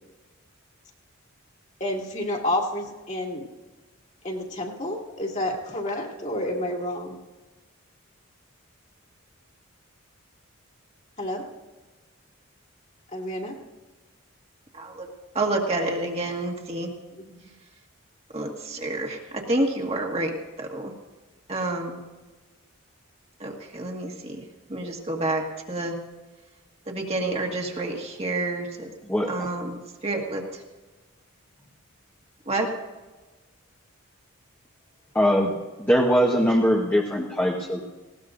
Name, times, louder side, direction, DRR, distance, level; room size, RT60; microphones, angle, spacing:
voice 1, 1.8-3.4 4.2-7.2 11.2-11.5 13.1-13.6 17.1-17.4, left 1 dB, 35° left, -1 dB, 2.3 m, -30 dB
voice 2, 14.7-15.0 15.3-16.9 18.3-20.9 21.5-22.0 23.4-24.4 24.7-25.9 26.9-28.9 29.3-30.4 32.5-32.7, right 2 dB, 30° right, 0 dB, 1.7 m, -29 dB
voice 3, 29.1-29.5 35.1-35.5 35.8-37.9, equal, 10° left, -1 dB, 1.2 m, -21 dB
19.5 x 17.5 x 2.6 m, 1.2 s
head